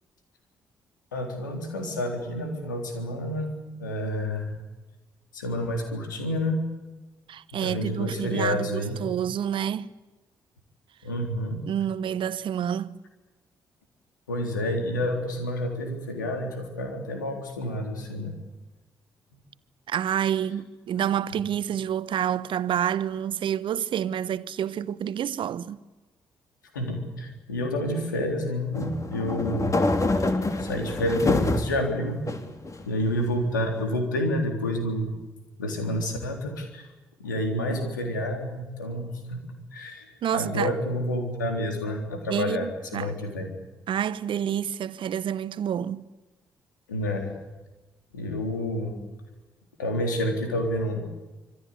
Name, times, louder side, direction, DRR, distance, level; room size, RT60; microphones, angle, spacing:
voice 1, 1.1-3.5 3.8-4.6 5.3-6.7 7.5-9.0 11.0-11.6 14.3-18.3 26.7-29.8 30.1-30.3 30.6-32.2 32.9-35.1 35.6-36.9 37.2-39.4 39.7-40.0 40.3-43.5 46.9-47.3 48.1-48.9 49.8-51.1, left 1 dB, 90° left, 3.6 m, -29 dB
voice 2, 7.3-9.9 11.7-13.0 19.9-25.8 40.2-40.7 42.3-43.1 43.9-46.0, right 9 dB, 55° right, 1.1 m, -28 dB
sound 1, 28.7-31.7 32.3-33.1, left 2 dB, 30° left, 3.4 m, -26 dB
26.0 x 25.0 x 8.5 m
figure-of-eight pair, 40°, 10 cm